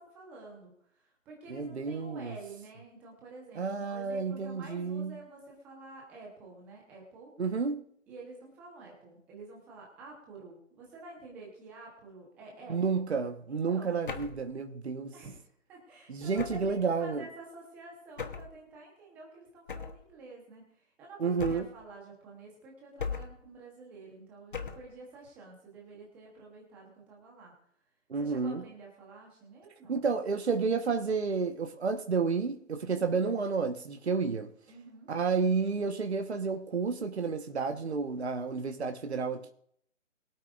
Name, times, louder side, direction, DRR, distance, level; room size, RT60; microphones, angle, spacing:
voice 1, 0.0-7.3 8.1-13.1 13.5-14.0 15.1-15.4 15.7-27.5 28.2-30.0 34.7-35.1, right 3 dB, 5° right, 0.9 m, -49 dB
voice 2, 1.5-2.3 3.6-5.2 7.4-7.8 12.7-15.1 16.1-17.2 21.2-21.7 28.1-28.6 29.9-34.5 35.1-39.5, right 5 dB, 55° right, 1.3 m, -31 dB
sound 1, 14.1-14.5 16.4-16.8 18.2-18.6 19.7-20.1 21.4-21.9 23.0-23.5 24.5-25.0, left 5 dB, 40° left, 1.0 m, -38 dB
22.5 x 8.5 x 2.5 m
figure-of-eight pair, 160°, 38 cm